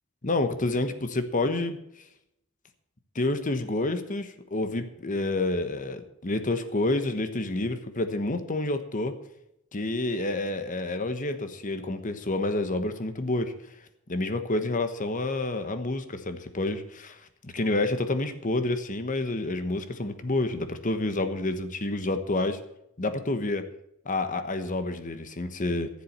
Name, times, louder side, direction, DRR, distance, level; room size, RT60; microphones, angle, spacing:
voice 1, 0.2-1.8 3.1-9.2 9.7-13.5 14.1-22.6 23.0-23.7 24.0-25.9, left 2 dB, 40° left, 9 dB, 1.2 m, -29 dB
14.0 x 7.6 x 7.3 m, 0.80 s
head